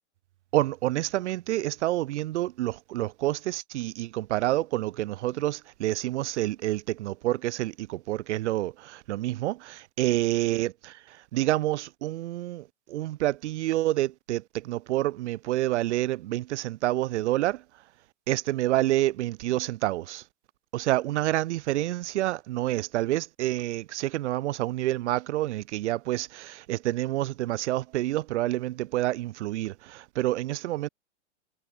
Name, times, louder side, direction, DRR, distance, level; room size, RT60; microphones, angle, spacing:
voice 1, 0.5-17.6 18.3-20.2 20.7-30.9, right 15 dB, 70° right, 0.5 m, -28 dB
hypercardioid pair, 115°, 36 cm